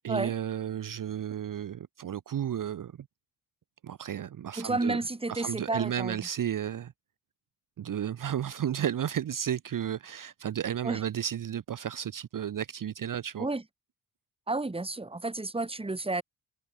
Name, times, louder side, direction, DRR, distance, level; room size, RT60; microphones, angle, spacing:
voice 1, 0.0-3.1 3.8-5.0 5.3-6.9 7.8-13.5, right 9 dB, 45° right, 0.9 m, -33 dB
voice 2, 4.6-6.2 10.8-11.0 13.4-13.6 14.5-16.2, right 2 dB, 15° right, 1.5 m, -31 dB
hypercardioid pair, 40°, 43 cm